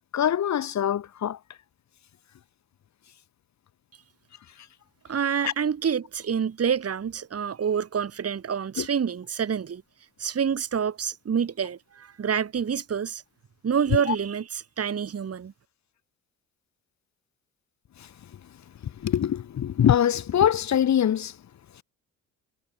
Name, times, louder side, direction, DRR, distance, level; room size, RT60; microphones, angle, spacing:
voice 1, 0.1-1.4 5.4-5.5 8.8-8.9 14.1-14.2 19.0-21.3, left 10 dB, 45° left, 1.5 m, -23 dB
voice 2, 5.1-9.8 10.2-13.2 13.6-15.5, right 7 dB, 35° right, 2.1 m, -27 dB
figure-of-eight pair, 45°, 41 cm